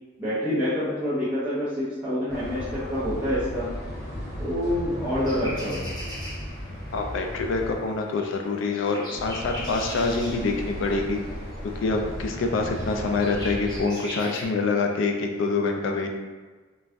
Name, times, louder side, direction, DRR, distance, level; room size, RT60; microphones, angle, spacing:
voice 1, 0.2-3.7 4.4-5.8, equal, 10° right, -13 dB, 0.7 m, -27 dB
sound 1, 2.3-7.7 9.1-13.8, equal, 55° left, 0.8 m, -35 dB
sound 2, 5.2-14.5, equal, 20° left, 0.8 m, -41 dB
voice 2, 6.9-11.2 11.8-16.1, left 3 dB, 70° left, 3 dB, 0.3 m, -26 dB
3.9 x 2.2 x 2.4 m, 1.4 s
head